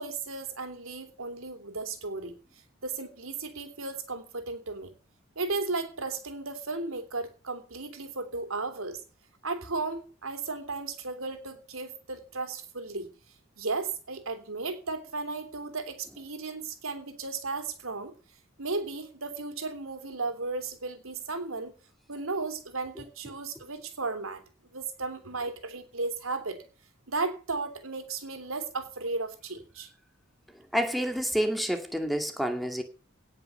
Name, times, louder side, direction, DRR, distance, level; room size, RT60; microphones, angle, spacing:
voice 1, 0.0-2.4 2.8-4.9 5.4-9.0 9.4-13.1 13.6-18.1 18.6-21.7 22.1-24.4 24.7-26.6 27.1-29.9, right 3 dB, 80° right, 8 dB, 3.1 m, -35 dB
voice 2, 30.7-32.8, equal, ahead, 5 dB, 2.2 m, -28 dB
18.0 x 6.6 x 7.0 m, 0.37 s
head